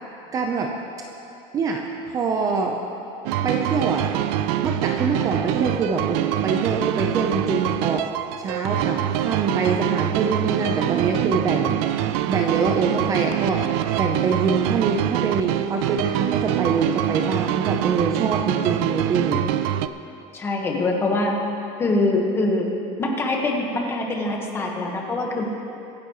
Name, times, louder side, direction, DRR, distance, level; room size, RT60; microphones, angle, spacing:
voice 1, 0.3-0.7 1.5-2.8 3.4-4.1 4.6-8.0 8.4-11.8 12.3-13.6 14.0-19.4, right 4 dB, 25° right, 2 dB, 0.7 m, -24 dB
sound 1, 3.3-19.9, right 12 dB, 65° right, 0.5 m, -24 dB
voice 2, 20.3-21.4 21.8-22.7 23.0-25.4, left 2 dB, 15° left, 0 dB, 1.3 m, -23 dB
24.0 x 10.5 x 3.1 m, 2.8 s
cardioid pair, 180°, 14 cm